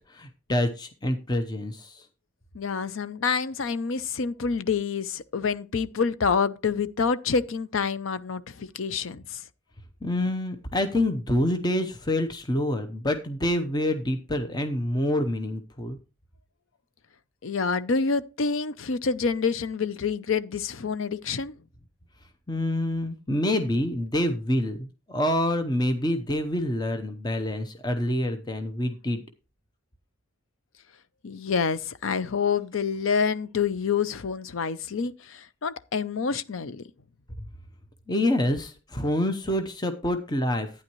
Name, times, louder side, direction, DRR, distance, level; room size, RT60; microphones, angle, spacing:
voice 1, 0.1-2.1 10.0-16.0 22.5-29.2 37.4-37.5 38.1-40.7, left 1 dB, 20° left, 0.8 m, -27 dB
voice 2, 2.5-9.4 17.4-21.5 31.2-36.8, left 5 dB, 80° left, 0.6 m, -27 dB
11.5 x 9.6 x 3.0 m
head